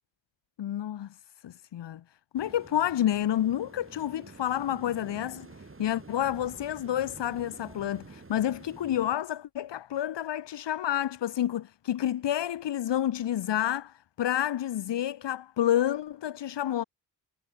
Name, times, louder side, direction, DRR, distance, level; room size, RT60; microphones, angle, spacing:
voice 1, 0.6-1.1 1.4-2.0 2.3-5.5 5.8-16.8, left 11 dB, 90° left, 1.0 m, -29 dB
sound 1, 2.3-9.2, right 3 dB, 30° right, 4.6 m, -49 dB
cardioid pair, 75°, 41 cm